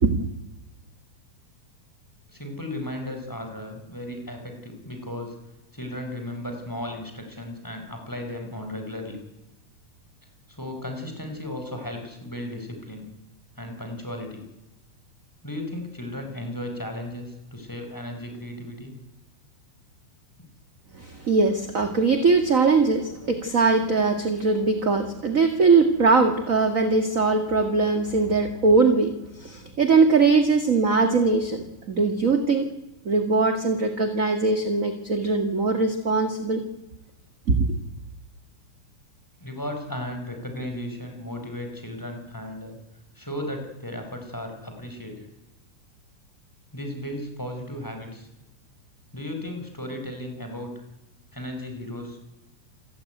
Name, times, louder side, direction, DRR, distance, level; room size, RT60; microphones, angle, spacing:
voice 1, 2.3-5.3 5.7-9.2 10.5-13.1 13.6-14.5 15.4-19.0 39.4-42.8 43.2-45.3 46.7-48.3 49.1-50.7 51.3-52.2, left 1 dB, 5° left, 4 dB, 5.2 m, -35 dB
voice 2, 20.9-32.7 33.1-36.6 37.5-37.8, right 4 dB, 30° right, 7 dB, 1.8 m, -21 dB
28.5 x 15.5 x 9.4 m, 1.0 s
omnidirectional pair, 3.5 m